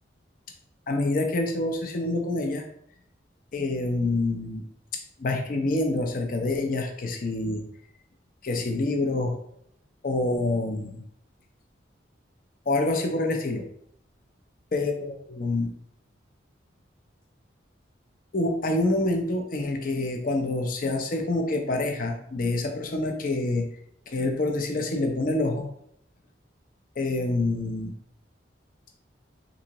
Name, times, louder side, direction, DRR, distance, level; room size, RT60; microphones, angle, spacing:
voice 1, 0.9-2.7 3.5-4.6 5.2-7.6 8.4-9.4 10.0-11.0 12.7-13.7 14.7-15.7 18.3-23.7 24.1-25.7 27.0-27.9, left 2 dB, 45° left, 3 dB, 0.5 m, -27 dB
3.8 x 2.6 x 2.9 m, 0.70 s
head